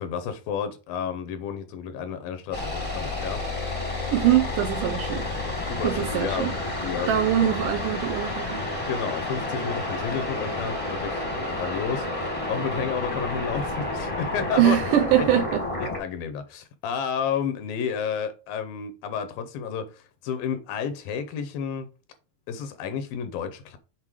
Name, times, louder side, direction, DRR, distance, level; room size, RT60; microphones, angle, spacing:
voice 1, 0.0-3.5 5.7-6.5 6.8-7.2 8.9-14.8 15.2-15.3 15.8-21.9 22.5-23.8, left 7 dB, 80° left, 2.3 m, -31 dB
sound 1, 2.5-16.0, left 2 dB, 20° left, 0.8 m, -30 dB
voice 2, 4.1-5.3 5.8-6.5 7.1-8.6 14.6-15.6, right 11 dB, 75° right, 2.1 m, -23 dB
7.4 x 4.3 x 4.8 m
omnidirectional pair, 4.4 m